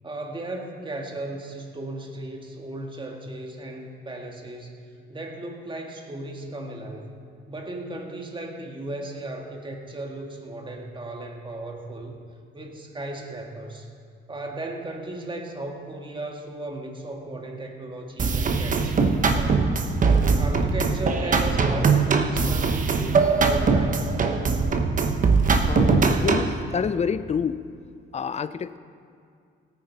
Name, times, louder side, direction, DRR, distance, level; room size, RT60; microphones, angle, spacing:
voice 1, 0.0-4.8 5.1-7.1 7.5-12.2 12.5-13.9 14.3-19.8 20.4-24.1, right 2 dB, 25° right, 2 dB, 1.8 m, -36 dB
sound 1, 18.2-26.6, right 4 dB, 40° right, 1.0 m, -21 dB
voice 2, 25.7-27.6 28.1-28.8, left 6 dB, 35° left, 14 dB, 0.5 m, -28 dB
17.0 x 9.6 x 4.0 m, 2.3 s
cardioid pair, 90°, 20 cm